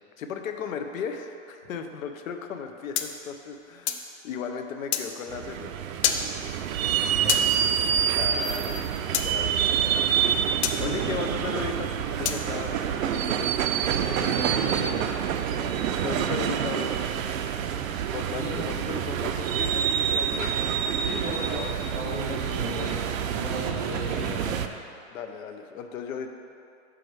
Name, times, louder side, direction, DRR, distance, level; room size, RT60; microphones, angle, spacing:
voice 1, 0.2-5.9 8.1-8.9 9.2-10.0 10.5-13.5 13.8-14.4 15.6-16.9 18.1-20.6 22.3-22.9 25.1-26.3, left 6 dB, 90° left, 6 dB, 0.7 m, -36 dB
sound 1, 2.9-4.1 4.9-5.1 6.0-6.2 7.3-7.5 9.1-9.3 10.6-10.8 12.2-12.4, left 8 dB, 55° left, 0.5 m, -26 dB
sound 2, 5.3-24.7, right 8 dB, 85° right, 0.5 m, -27 dB
voice 2, 13.9-15.1 18.3-18.6 21.0-22.9 23.3-24.6, right 2 dB, 15° right, -9 dB, 0.4 m, -34 dB
6.3 x 4.9 x 4.6 m, 2.5 s
supercardioid pair, 175°, 39 cm